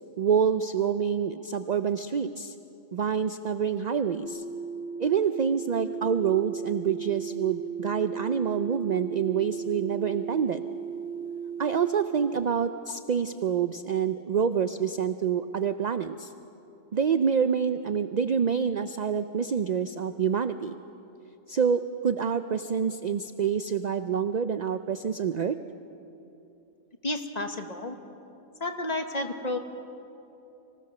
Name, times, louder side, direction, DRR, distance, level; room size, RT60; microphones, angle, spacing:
voice 1, 0.2-2.5 2.9-4.4 5.0-10.6 11.6-16.3 16.9-20.8 21.5-25.6, right 7 dB, 65° right, 10 dB, 0.4 m, -27 dB
sound 1, 4.2-12.5, right 7 dB, 55° left, 2.4 m, -36 dB
voice 2, 27.0-28.0 28.6-29.6, left 2 dB, 35° left, 6 dB, 1.2 m, -31 dB
25.0 x 16.5 x 6.6 m, 2.9 s
omnidirectional pair, 1.4 m